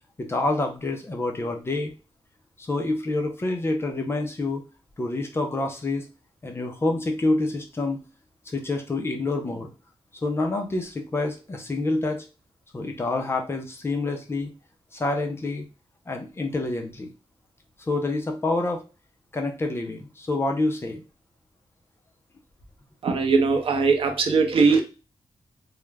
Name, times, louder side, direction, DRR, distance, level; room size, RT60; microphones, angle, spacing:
voice 1, 0.2-1.9 2.6-4.6 5.0-6.0 6.4-8.0 8.5-9.7 10.2-12.2 12.7-14.5 14.9-15.6 16.1-17.1 17.9-18.8 19.3-21.0, left 2 dB, 25° left, 3 dB, 0.4 m, -27 dB
voice 2, 23.0-24.8, right 4 dB, 65° right, 5 dB, 0.5 m, -20 dB
2.3 x 2.0 x 3.2 m, 0.31 s
wide cardioid pair, 175°, 10 cm